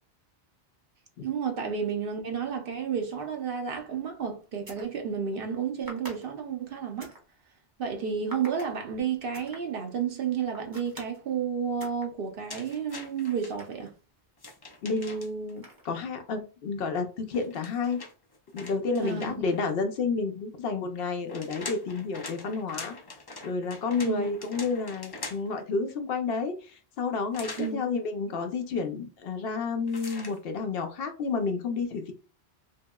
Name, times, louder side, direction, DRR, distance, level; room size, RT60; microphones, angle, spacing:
voice 1, 1.2-7.1 7.8-13.9 19.0-19.4 24.0-24.3 27.6-27.8, right 7 dB, 65° right, 0.7 m, -31 dB
sound 1, 3.7-3.9 4.4-4.9 5.9-7.2 8.3-8.7 9.3-9.6 10.5-11.2 11.8-12.1 12.5-14.3 15.6-16.0, right 1 dB, 25° right, 0.7 m, -46 dB
sound 2, 12.5-13.5 14.4-15.5 17.3-19.6 21.0-25.6 27.3-27.7 29.9-30.4, left 3 dB, 35° left, 0.4 m, -43 dB
voice 2, 14.8-18.0 18.5-22.9 23.4-32.1, left 4 dB, 70° left, 0.7 m, -30 dB
2.9 x 2.8 x 2.2 m
omnidirectional pair, 1.1 m